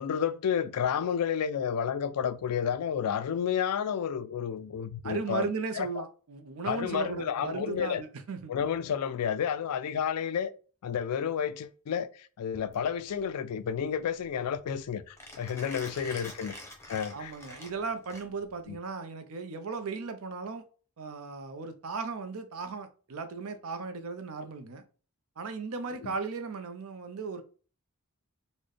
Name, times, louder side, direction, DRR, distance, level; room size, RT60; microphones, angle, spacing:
voice 1, 0.0-5.5 5.8-6.0 6.7-8.0 8.5-10.5 10.8-16.5 16.9-17.3 18.7-18.8 26.0-26.1, left 8 dB, 85° left, 0.4 m, -31 dB
voice 2, 5.0-8.5 15.9-16.2 17.1-20.6 21.0-24.8 25.4-27.4, right 4 dB, 65° right, 0.6 m, -36 dB
Mechanisms, 12.6-18.7, left 1 dB, 10° left, 0.7 m, -47 dB
3.9 x 2.1 x 3.2 m
head